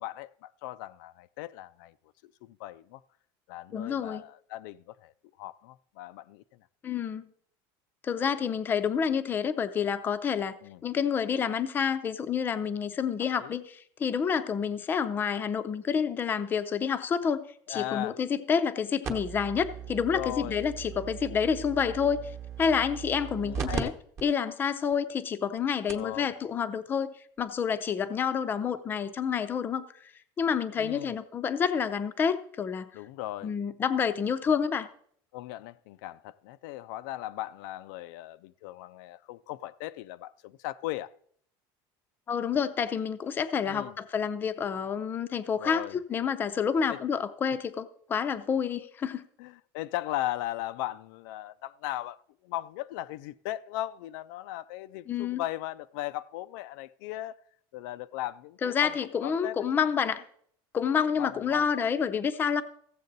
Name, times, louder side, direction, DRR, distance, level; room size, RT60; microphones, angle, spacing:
voice 1, 0.0-1.9 2.2-3.0 3.5-5.1 5.4-6.4 10.6-10.8 13.4-13.6 17.7-18.2 20.1-20.6 23.4-24.0 25.9-26.3 30.7-31.2 32.9-33.5 35.3-41.1 43.6-44.0 45.6-46.0 46.9-47.0 49.4-52.2 52.4-57.4 57.7-58.9 59.2-59.7 61.2-61.7, left 15 dB, 75° left, 0.4 m, -37 dB
voice 2, 3.7-4.2 6.8-7.3 8.0-10.6 10.8-22.3 22.6-23.9 24.2-29.9 30.4-32.9 33.4-34.9 42.3-49.3 55.1-55.4 58.6-60.2 60.7-62.6, left 7 dB, 20° left, 0.5 m, -28 dB
sound 1, 19.0-23.8 24.2-24.3 24.9-25.0 25.6-25.7 25.9-26.2 27.4-27.5, right 7 dB, 25° right, 1.0 m, -38 dB
15.5 x 7.4 x 4.0 m
cardioid pair, 170°, 10 cm